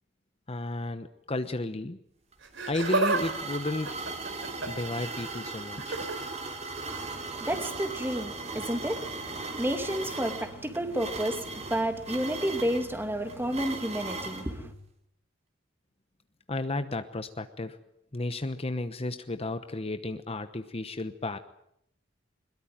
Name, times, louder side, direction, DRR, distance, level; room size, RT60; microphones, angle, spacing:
voice 1, 0.5-2.0 2.7-4.0 4.6-6.0 16.5-17.8 18.1-21.4, left 2 dB, 30° left, 1.0 m, -33 dB
sound 1, 2.3-14.5, right 3 dB, 35° right, 3.6 m, -38 dB
Laughter, 2.4-3.2 3.5-4.9 5.8-6.2 7.5-7.7 8.6-8.7, right 3 dB, 65° right, 4.1 m, -30 dB
voice 2, 6.9-14.7, equal, 10° right, 2.5 m, -31 dB
22.0 x 21.5 x 9.0 m
head